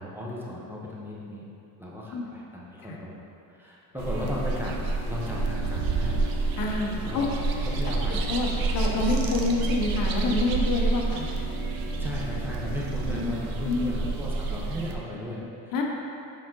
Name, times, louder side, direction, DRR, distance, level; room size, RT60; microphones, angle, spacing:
voice 1, 0.0-1.5 1.8-3.1 3.5-4.8 5.1-6.3 7.0-7.2 7.7-8.3 12.0-15.7, left 1 dB, 5° right, -6 dB, 0.7 m, -36 dB
sound 1, 3.9-14.1, equal, 80° left, 1.3 m, -40 dB
sound 2, 4.0-15.0, right 3 dB, 70° right, 0.7 m, -29 dB
voice 2, 6.6-7.3 8.1-11.3 13.1-13.3 13.6-13.9 15.7-15.8, left 3 dB, 65° left, 0 dB, 0.8 m, -28 dB
7.5 x 3.7 x 3.8 m, 2.7 s
cardioid pair, 150°, 37 cm